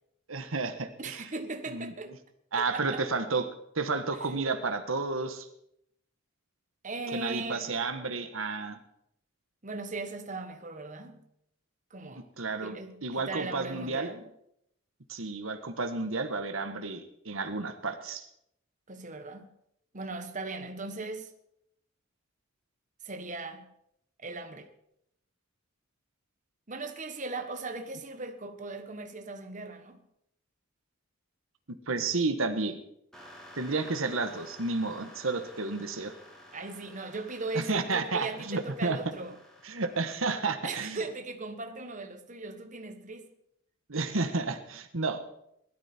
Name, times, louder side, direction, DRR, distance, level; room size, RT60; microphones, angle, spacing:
voice 1, 0.3-1.3 1.7-1.9 2.5-3.5 3.7-5.5 7.1-8.8 12.2-14.1 15.1-18.3 31.7-32.8 33.5-36.1 37.5-39.0 39.6-41.0 43.9-45.2, right 3 dB, 80° right, 1.5 m, -31 dB
voice 2, 1.0-2.1 2.7-3.0 4.1-4.3 6.8-7.8 9.6-11.2 11.9-12.3 12.6-14.3 18.9-19.5 19.9-21.3 23.0-23.7 24.2-24.7 26.7-30.0 36.5-39.3 40.6-43.3, right 3 dB, 40° right, 1.4 m, -38 dB
sound 1, 33.1-40.2, left 1 dB, ahead, 4.1 m, -52 dB
20.0 x 13.0 x 4.5 m
head